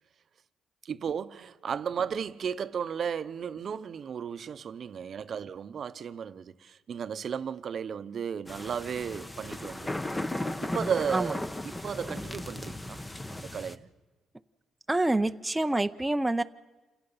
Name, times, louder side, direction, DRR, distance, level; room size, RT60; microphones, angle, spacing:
voice 1, 0.8-10.2 10.6-11.4 11.6-13.0 13.3-13.9, right 7 dB, 55° right, 0.8 m, -34 dB
sound 1, 8.5-13.8, left 1 dB, 15° left, 0.9 m, -36 dB
voice 2, 14.9-16.4, right 2 dB, 10° right, 0.6 m, -27 dB
27.5 x 17.5 x 5.6 m
cardioid pair, 90°, 0 cm